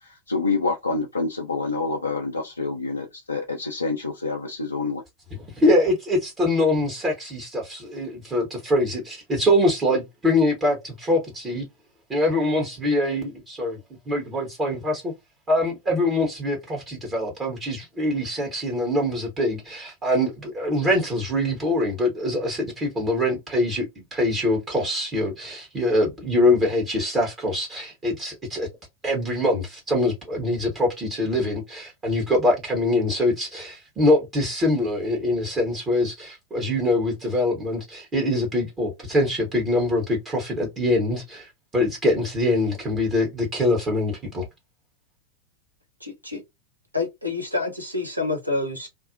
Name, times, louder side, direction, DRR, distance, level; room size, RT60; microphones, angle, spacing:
voice 1, 0.0-5.0, left 3 dB, 80° left, 0.4 m, -27 dB
voice 2, 5.3-11.7 12.1-13.8 14.1-15.1 15.5-28.7 29.0-44.4, left 1 dB, 25° right, 0.9 m, -24 dB
voice 3, 46.0-46.4 46.9-48.9, left 3 dB, 85° right, 0.9 m, -28 dB
2.5 x 2.0 x 2.5 m
figure-of-eight pair, 90°, 0 cm